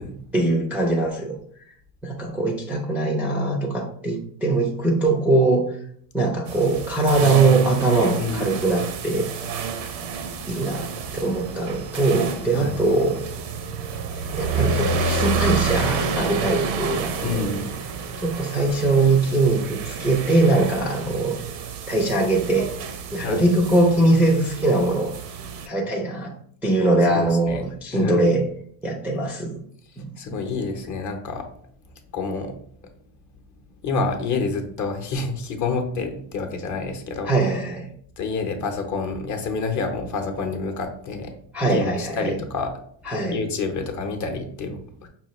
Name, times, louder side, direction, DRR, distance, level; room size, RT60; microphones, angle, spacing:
voice 1, 0.3-1.4 2.0-5.7 6.1-9.3 10.5-10.9 11.2-13.2 14.4-17.5 18.2-21.4 21.9-22.7 23.1-25.1 25.7-26.3 26.6-28.4 28.8-29.6 30.0-30.1 37.3-37.9 41.5-42.4 43.1-43.4, right 2 dB, 5° right, -4 dB, 0.4 m, -21 dB
sound 1, 6.5-25.7, right 5 dB, 85° right, 0.7 m, -29 dB
voice 2, 8.2-8.6 12.5-12.8 17.2-17.7 23.2-23.4 27.1-27.6 27.9-28.3 30.2-31.5 32.1-32.5 33.8-37.3 38.2-41.3 41.6-42.7 43.3-45.1, left 4 dB, 40° left, 4 dB, 0.7 m, -28 dB
5.5 x 2.3 x 3.0 m, 0.62 s
supercardioid pair, 120°, 48 cm